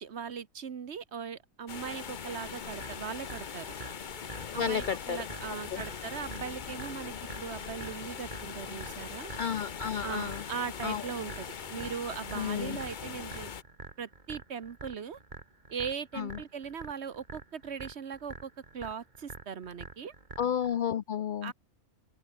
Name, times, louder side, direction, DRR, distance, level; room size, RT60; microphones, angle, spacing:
voice 1, 0.0-3.6 4.5-9.3 10.0-13.5 14.0-15.2 15.7-20.1 21.4-21.5, right 7 dB, 55° right, 1.3 m, -39 dB
sound 1, 1.7-13.6, left 7 dB, 40° left, 0.8 m, -41 dB
sound 2, 2.8-20.8, right 3 dB, 35° right, 2.4 m, -47 dB
voice 2, 4.6-5.2 5.7-5.8 9.4-10.4 10.8-11.0 12.3-12.8 16.1-16.4 20.4-21.5, left 8 dB, 70° left, 0.4 m, -32 dB
open air
omnidirectional pair, 1.4 m